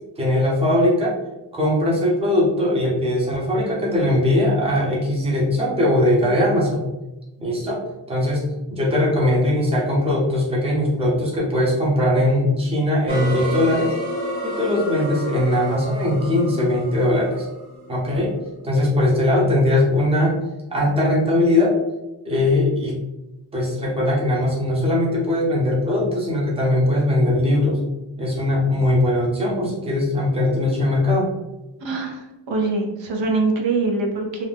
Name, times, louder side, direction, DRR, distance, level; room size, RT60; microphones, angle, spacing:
voice 1, 0.2-1.1 1.5-6.8 7.4-7.8 8.1-8.4 8.7-13.9 14.4-17.5 17.9-18.4 18.6-20.3 20.7-21.8 22.2-23.0 23.5-27.8 28.2-31.3, left 1 dB, 15° right, -5 dB, 0.6 m, -20 dB
sound 1, 13.1-18.1, equal, 40° right, 1.0 m, -30 dB
voice 2, 31.8-34.5, right 3 dB, 75° right, 1 dB, 0.6 m, -23 dB
2.5 x 2.1 x 3.3 m, 1.0 s
wide cardioid pair, 175°, 45 cm